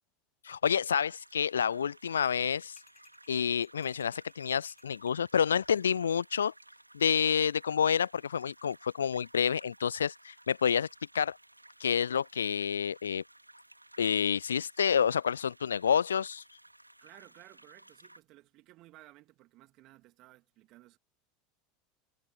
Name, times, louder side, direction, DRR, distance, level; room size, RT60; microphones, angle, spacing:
voice 1, 0.4-2.7 3.3-6.5 6.9-10.9 11.1-11.4 11.8-13.2 14.0-16.4, left 7 dB, 75° left, 0.3 m, -28 dB
sound 1, 0.9-18.2, right 1 dB, 85° right, 3.3 m, -58 dB
sound 2, 2.8-5.2, left 9 dB, 30° left, 7.4 m, -64 dB
voice 2, 17.0-21.0, right 18 dB, 45° right, 3.1 m, -57 dB
figure-of-eight pair, 80°, 0 cm